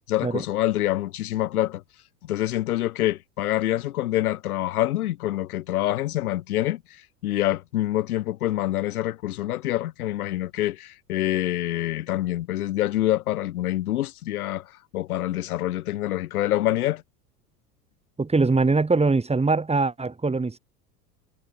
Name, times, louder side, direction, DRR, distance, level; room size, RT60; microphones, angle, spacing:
voice 1, 0.1-1.8 2.2-17.0, left 14 dB, 65° left, 3.9 m, -26 dB
voice 2, 18.2-20.6, right 3 dB, 15° right, 7.0 m, -22 dB
figure-of-eight pair, 80°, 47 cm